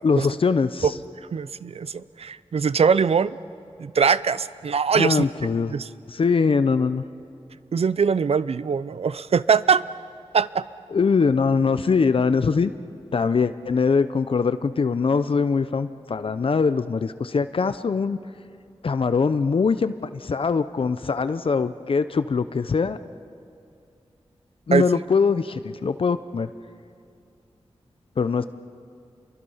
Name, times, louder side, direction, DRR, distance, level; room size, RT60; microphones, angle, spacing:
voice 1, 0.0-0.9 4.9-5.7 6.1-7.0 10.9-12.7 13.1-18.2 18.8-23.0 24.7-26.5 28.2-28.4, left 5 dB, 60° left, 12 dB, 0.7 m, -22 dB
voice 2, 1.3-3.4 3.8-5.3 5.7-5.9 7.7-9.8 10.3-10.6 24.7-24.8, right 6 dB, 70° right, 16 dB, 0.6 m, -22 dB
29.5 x 23.5 x 5.6 m, 2.5 s
wide cardioid pair, 95°, 11 cm